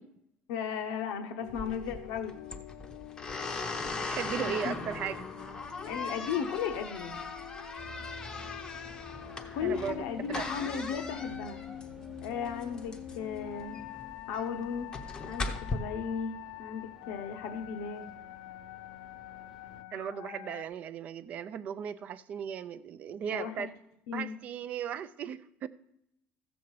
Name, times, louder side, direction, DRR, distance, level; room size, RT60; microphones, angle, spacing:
voice 1, 0.5-2.4 4.6-4.7 5.8-7.2 9.5-11.6 12.2-13.8 14.3-14.9 15.2-16.3 16.6-18.1 23.3-23.7 24.1-24.3, left 7 dB, 85° left, 5 dB, 0.8 m, -35 dB
sound 1, 1.4-20.6, left 13 dB, 60° left, 0.3 m, -46 dB
sound 2, 1.5-15.7, left 3 dB, 15° left, 0.7 m, -39 dB
voice 2, 4.0-5.2 9.6-10.0 10.3-10.5 19.9-23.7 24.1-25.7, right 8 dB, 35° right, 14 dB, 0.4 m, -37 dB
sound 3, 7.8-19.8, right 2 dB, 5° right, 1.0 m, -53 dB
14.5 x 7.1 x 4.7 m, 0.80 s
cardioid pair, 175°, 4 cm